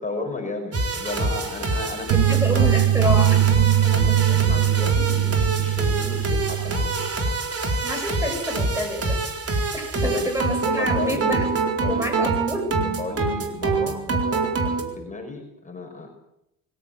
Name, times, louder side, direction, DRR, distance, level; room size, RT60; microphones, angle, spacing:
voice 1, 0.0-2.9 3.8-7.3 10.0-10.3 10.8-11.5 11.8-12.4 12.8-16.1, left 3 dB, 20° left, 2 dB, 5.3 m, -34 dB
sound 1, 0.7-14.8, right 3 dB, 40° right, 4.3 m, -25 dB
voice 2, 2.1-3.4 7.8-11.5 11.9-12.8, left 1 dB, 10° right, 5 dB, 6.9 m, -28 dB
sound 2, 2.1-7.1, right 12 dB, 75° right, 1.4 m, -21 dB
24.5 x 15.0 x 8.6 m, 0.84 s
cardioid pair, 105°, 37 cm